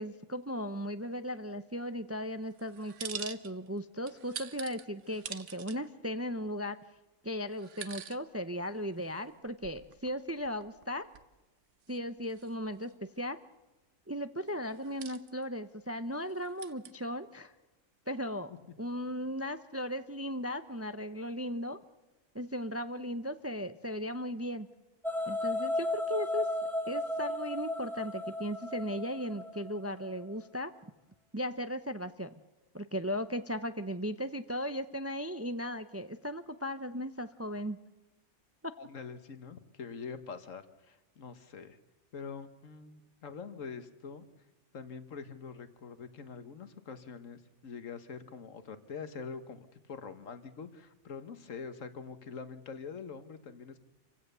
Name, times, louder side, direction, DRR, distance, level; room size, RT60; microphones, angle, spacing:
voice 1, 0.0-6.8 7.2-11.1 11.9-12.9 13.2-13.4 14.1-17.5 18.1-18.5 18.8-21.8 22.3-24.7 25.3-26.5 26.9-30.7 31.3-32.3 32.7-37.8 38.6-38.7, equal, 20° right, 11 dB, 0.5 m, -37 dB
sound 1, 2.6-3.8 4.1-5.8 6.5-6.6 7.5-8.2 8.5-8.6 9.3-10.8 11.1-11.2 11.9-12.0 12.3-12.9 14.7-15.4 16.2-16.9, right 8 dB, 70° right, 1.3 m, -45 dB
sound 2, 25.0-30.1, left 1 dB, ahead, 2.0 m, -34 dB
voice 2, 38.8-41.8 42.1-44.3 44.7-53.8, left 5 dB, 85° left, 10 dB, 1.7 m, -44 dB
27.5 x 16.0 x 6.8 m, 1.1 s
omnidirectional pair, 1.3 m